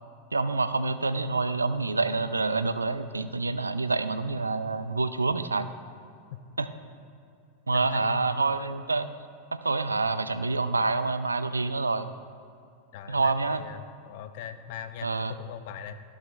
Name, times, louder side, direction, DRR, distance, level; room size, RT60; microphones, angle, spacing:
voice 1, 0.3-5.7 6.6-6.7 7.7-9.1 9.6-12.1 13.1-13.6 15.0-15.3, right 3 dB, 80° right, 11 dB, 0.4 m, -27 dB
voice 2, 7.7-8.2 12.9-15.9, left 9 dB, 50° left, 10 dB, 0.6 m, -41 dB
14.5 x 4.9 x 3.3 m, 2.5 s
figure-of-eight pair, 85°, 0 cm